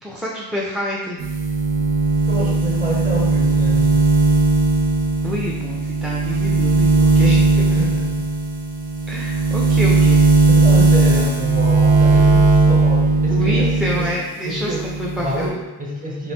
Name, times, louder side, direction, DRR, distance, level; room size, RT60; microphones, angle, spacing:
voice 1, 0.0-1.2 5.2-7.8 9.1-10.2 13.3-15.5, left 1 dB, ahead, -4 dB, 0.4 m, -27 dB
sound 1, 1.2-14.1 14.5-15.5, right 3 dB, 85° right, 0.7 m, -17 dB
voice 2, 2.3-4.1 7.6-8.3 10.5-14.1 14.4-14.9 15.2-16.3, right 1 dB, 20° right, -2 dB, 0.8 m, -28 dB
3.1 x 2.4 x 3.2 m, 1.1 s
cardioid pair, 80°, 39 cm